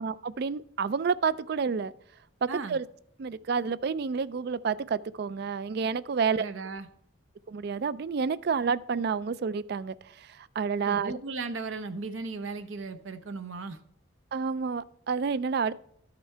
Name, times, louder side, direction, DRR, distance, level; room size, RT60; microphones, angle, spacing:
voice 1, 0.0-1.9 2.4-2.8 3.2-6.5 7.5-11.1 14.3-15.7, right 5 dB, 50° right, 0.3 m, -29 dB
voice 2, 6.3-6.9 10.9-13.8, right 3 dB, 70° right, 0.7 m, -36 dB
12.5 x 6.7 x 4.4 m
head